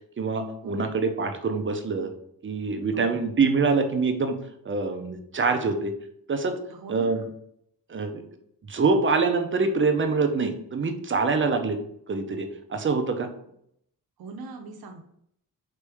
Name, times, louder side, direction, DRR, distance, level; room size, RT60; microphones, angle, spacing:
voice 1, 0.2-2.1 2.4-4.4 4.6-5.9 6.3-6.6 6.9-7.2 7.9-8.2 8.7-11.8 12.1-13.3, right 4 dB, 35° right, 6 dB, 0.6 m, -25 dB
voice 2, 6.7-7.3 14.2-15.0, right 3 dB, 80° right, 4 dB, 0.7 m, -41 dB
4.1 x 3.2 x 3.4 m, 0.72 s
cardioid pair, 95°, 36 cm